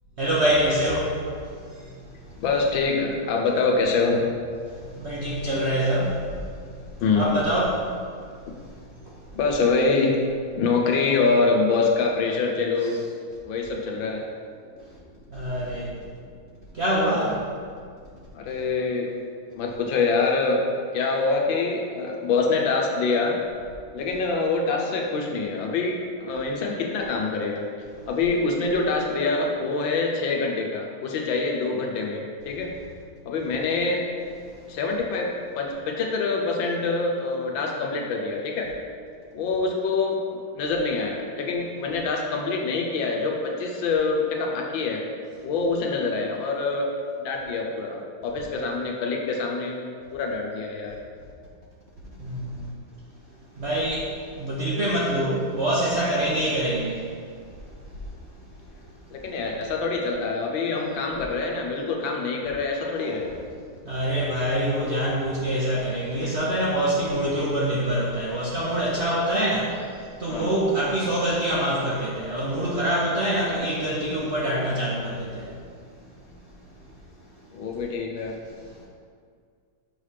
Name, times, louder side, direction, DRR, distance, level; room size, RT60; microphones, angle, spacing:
voice 1, 0.2-1.2 1.7-1.9 4.8-6.5 7.2-7.9 9.0-9.1 15.3-15.9 16.7-17.4 52.2-52.7 53.6-57.1 63.0-63.1 63.8-75.6, right 1 dB, 50° right, -6 dB, 0.8 m, -25 dB
voice 2, 2.4-4.2 7.0-7.5 9.3-10.2 10.5-13.0 13.4-14.2 18.3-19.1 19.6-20.6 20.9-23.4 23.9-27.7 28.1-32.7 33.3-34.0 34.7-38.7 39.3-45.0 45.4-46.9 47.2-49.8 50.1-51.0 59.1-63.3 70.3-70.5 77.5-78.4, left 4 dB, 80° left, 1 dB, 1.5 m, -25 dB
6.2 x 3.3 x 5.6 m, 2.1 s
omnidirectional pair, 2.1 m